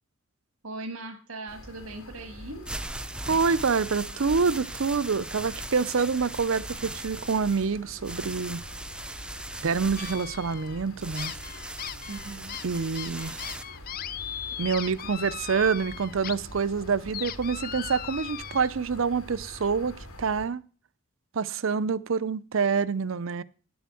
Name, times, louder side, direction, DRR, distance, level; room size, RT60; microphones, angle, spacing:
voice 1, 0.6-2.6 12.1-12.6, right 2 dB, 90° right, 1.6 m, -39 dB
sound 1, 1.5-20.5, left 1 dB, 85° left, 3.1 m, -46 dB
sound 2, 2.4-13.6, right 1 dB, 5° right, 0.5 m, -39 dB
voice 2, 3.3-8.6 9.6-11.3 12.6-13.4 14.6-20.6 21.3-23.4, right 5 dB, 65° right, 0.5 m, -27 dB
sound 3, 10.0-10.8 11.1-16.3 16.7-18.7, left 10 dB, 45° left, 0.5 m, -38 dB
10.5 x 7.1 x 7.5 m
head